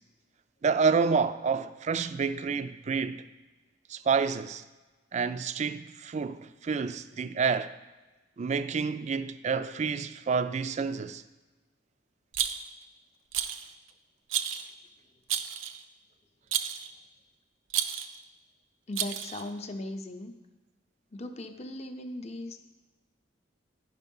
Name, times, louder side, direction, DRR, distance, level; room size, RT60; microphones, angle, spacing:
voice 1, 0.6-3.2 3.9-4.6 5.1-7.7 8.4-11.2, right 5 dB, 35° right, 0.3 m, -29 dB
Rattle, 12.3-12.8 13.3-13.7 14.3-14.7 15.3-15.8 16.5-16.9 17.7-18.2 18.9-19.5, right 9 dB, 90° right, 0.5 m, -31 dB
voice 2, 18.9-20.3 21.1-22.6, left 1 dB, 35° left, 0.6 m, -38 dB
9.9 x 5.8 x 5.4 m
head